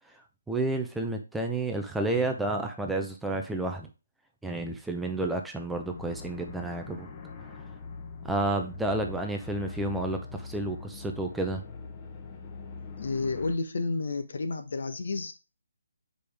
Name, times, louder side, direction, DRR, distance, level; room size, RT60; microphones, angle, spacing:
voice 1, 0.5-3.9 4.4-7.1 8.2-11.6, right 2 dB, 5° right, 3 dB, 0.7 m, -30 dB
sound 1, 5.7-13.6, left 4 dB, 25° left, 1.1 m, -42 dB
voice 2, 13.0-15.3, left 3 dB, 60° left, 8 dB, 1.1 m, -31 dB
6.8 x 5.2 x 3.5 m, 0.30 s
figure-of-eight pair, 150°, 0 cm